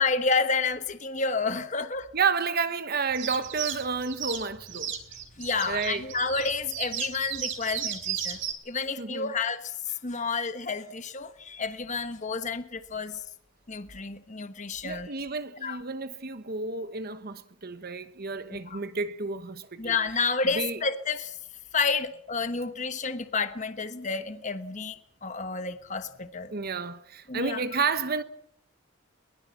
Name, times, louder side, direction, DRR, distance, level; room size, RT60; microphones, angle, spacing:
voice 1, 0.0-2.1 5.4-8.4 8.7-13.2 13.7-15.1 15.6-15.8 18.5-18.8 19.8-21.4 21.7-26.5 27.3-27.6, left 4 dB, 35° left, 1.2 m, -30 dB
voice 2, 2.1-4.9 5.7-6.0 9.0-9.3 14.8-20.0 20.5-20.8 26.5-28.2, right 4 dB, 45° right, 1.1 m, -31 dB
sound 1, 3.1-8.5, right 9 dB, 65° right, 4.2 m, -34 dB
22.0 x 20.5 x 7.2 m
head